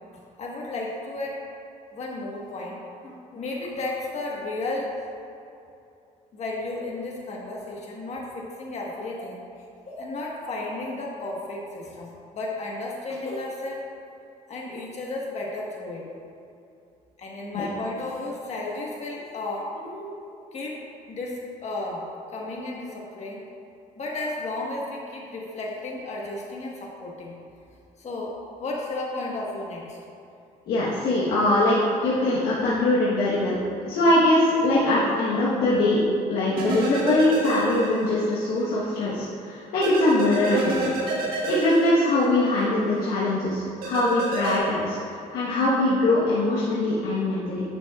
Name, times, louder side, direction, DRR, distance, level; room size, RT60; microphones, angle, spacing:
voice 1, 0.4-1.4 1.9-2.8 3.0-4.9 6.3-13.8 14.5-16.1 17.2-20.2 20.5-20.8 21.1-22.0 22.3-23.4 24.0-27.4 28.0-28.3 28.6-30.0, left 2 dB, 50° left, -3 dB, 1.5 m, -33 dB
voice 2, 30.7-33.6 33.9-40.9 41.3-45.0 45.3-47.6, left 2 dB, 90° left, -8 dB, 1.3 m, -22 dB
sound 1, 36.6-38.3 38.6-38.7 39.8-42.6 43.8-44.6, right 3 dB, 85° right, 1.5 m, -28 dB
10.5 x 6.1 x 2.4 m, 2.7 s
cardioid pair, 115°, 15 cm